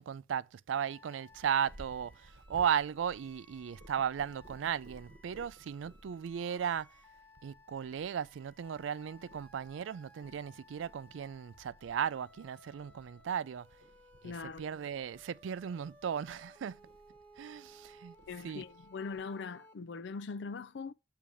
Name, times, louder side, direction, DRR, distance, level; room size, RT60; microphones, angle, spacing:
voice 1, 0.0-6.9 7.4-13.7 14.2-16.8 17.4-18.7, right 8 dB, 85° right, 0.3 m, -36 dB
sound 1, 0.7-19.7, left 1 dB, 10° left, 1.0 m, -60 dB
Purr, 1.3-19.2, right 1 dB, 60° right, 1.1 m, -59 dB
voice 2, 14.2-14.6 18.3-20.9, left 4 dB, 65° left, 0.4 m, -41 dB
7.0 x 3.4 x 6.2 m
head